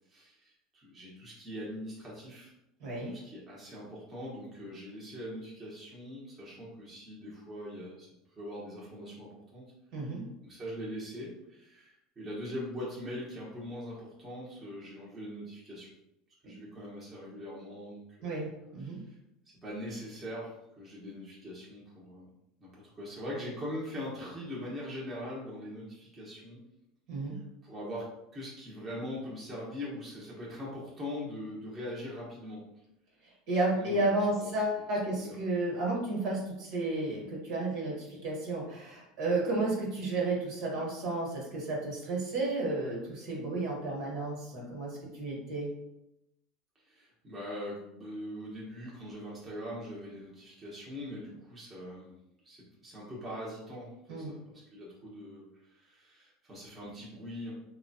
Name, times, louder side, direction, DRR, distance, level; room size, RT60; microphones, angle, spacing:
voice 1, 0.1-2.5 2.9-8.1 8.4-9.6 10.0-10.1 10.4-15.9 16.4-18.4 18.8-19.2 19.6-22.3 22.6-26.6 27.3-32.6 33.5-34.6 35.1-35.4 46.9-52.1 52.4-55.4 55.7-57.5, equal, 20° right, -6 dB, 1.0 m, -42 dB
voice 2, 2.8-3.2 9.9-10.2 16.4-16.5 18.2-19.0 27.1-27.4 33.5-45.7 54.1-54.3, right 2 dB, 65° right, -3 dB, 1.3 m, -32 dB
3.0 x 2.2 x 2.7 m, 0.85 s
supercardioid pair, 125°, 0 cm